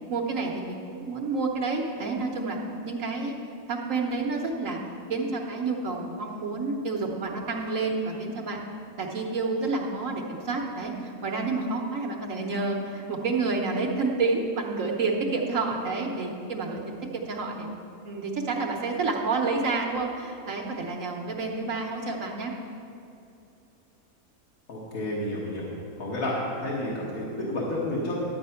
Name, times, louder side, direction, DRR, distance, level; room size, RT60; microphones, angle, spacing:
voice 1, 0.0-2.6 2.8-3.4 3.7-4.8 5.1-8.6 9.0-17.7 18.0-22.5, right 3 dB, 65° right, 0 dB, 1.3 m, -29 dB
voice 2, 24.7-25.7 26.0-28.2, left 1 dB, 75° left, -5 dB, 1.9 m, -30 dB
11.0 x 8.6 x 5.6 m, 2.7 s
omnidirectional pair, 1.5 m